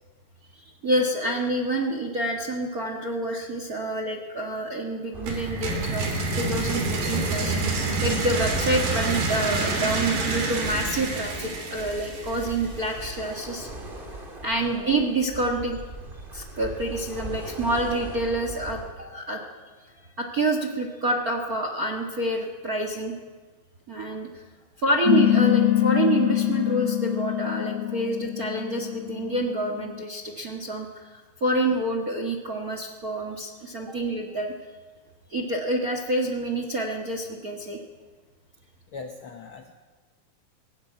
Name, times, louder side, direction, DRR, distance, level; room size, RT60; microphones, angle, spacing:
voice 1, 0.8-6.1 6.4-13.7 14.4-15.8 16.3-19.4 20.2-23.2 23.9-24.4 24.8-34.5 35.3-37.8, right 1 dB, 45° right, 4 dB, 1.1 m, -27 dB
sound 1, 5.1-18.9, right 1 dB, 20° right, 1.6 m, -40 dB
sound 2, 5.3-13.0, right 3 dB, 85° right, 5.2 m, -28 dB
sound 3, 25.1-30.0, left 14 dB, 65° left, 1.6 m, -24 dB
voice 2, 38.9-39.7, left 4 dB, 90° left, 4 dB, 1.1 m, -41 dB
19.5 x 16.0 x 9.3 m, 1.4 s
omnidirectional pair, 4.2 m